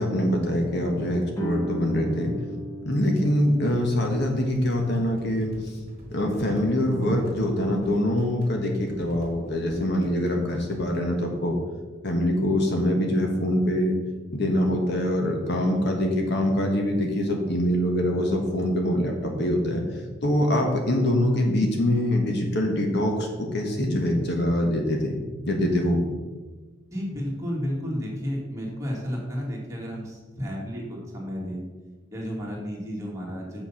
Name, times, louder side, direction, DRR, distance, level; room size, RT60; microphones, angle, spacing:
voice 1, 0.0-2.3 2.8-5.8 6.1-11.6 12.0-14.0 14.3-19.8 20.2-25.2 25.4-26.0, left 1 dB, 55° left, 2 dB, 1.3 m, -24 dB
Guitar, 1.3-6.7, equal, 15° left, 1.3 m, -38 dB
sound 1, 3.7-11.1, equal, 35° right, 2.4 m, -46 dB
voice 2, 26.9-31.7 32.1-33.6, equal, 15° right, -4 dB, 2.2 m, -32 dB
7.0 x 6.2 x 5.7 m, 1.3 s
head